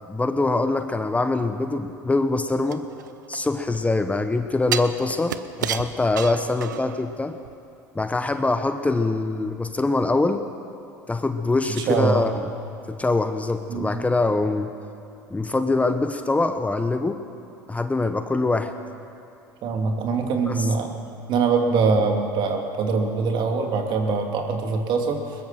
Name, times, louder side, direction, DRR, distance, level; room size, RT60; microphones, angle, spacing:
voice 1, 0.1-2.9 3.3-7.4 7.9-10.5 11.1-12.3 12.9-14.7 15.3-17.2 17.7-18.7 20.5-20.7, left 3 dB, 15° left, 8 dB, 1.3 m, -24 dB
sound 1, 2.7-3.9 4.7-7.1 7.4-7.5, right 10 dB, 85° right, 0.7 m, -31 dB
voice 2, 11.8-12.3 13.7-14.0 19.6-20.9 21.3-25.2, right 4 dB, 55° right, 3 dB, 2.9 m, -23 dB
21.5 x 21.0 x 6.0 m, 2.5 s
hypercardioid pair, 70°, 10 cm